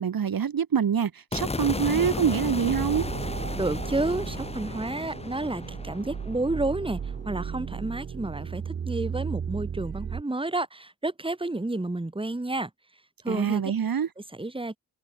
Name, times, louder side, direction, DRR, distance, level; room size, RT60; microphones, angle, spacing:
voice 1, 0.0-3.0 13.3-14.1, right 7 dB, 60° right, 1.0 m, -25 dB
sound 1, 1.3-7.5, left 3 dB, 15° left, 0.7 m, -34 dB
sound 2, 2.7-10.2, right 7 dB, 35° right, 0.4 m, -35 dB
voice 2, 3.6-12.7 13.2-13.6 14.2-14.8, right 2 dB, 15° right, 1.4 m, -30 dB
wide cardioid pair, 75°, 39 cm